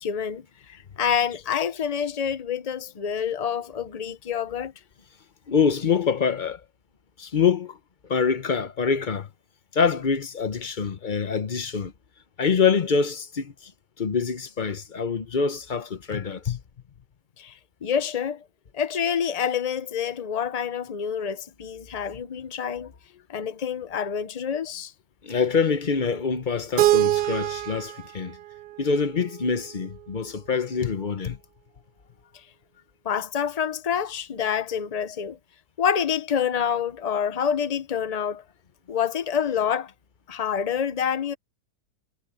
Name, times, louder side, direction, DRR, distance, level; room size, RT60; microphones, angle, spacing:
voice 1, 0.0-4.7 17.4-18.4 18.7-22.9 23.3-24.9 33.0-35.4 35.8-38.4 38.9-39.9 40.3-41.3, left 8 dB, 85° left, 0.3 m, -27 dB
voice 2, 5.5-6.6 7.2-7.8 8.1-9.3 9.7-11.9 12.4-13.7 14.0-16.6 25.2-28.4 28.8-31.4, left 6 dB, 35° left, 0.8 m, -25 dB
Keyboard (musical), 26.8-29.7, right 16 dB, 90° right, 1.2 m, -25 dB
omnidirectional pair, 1.8 m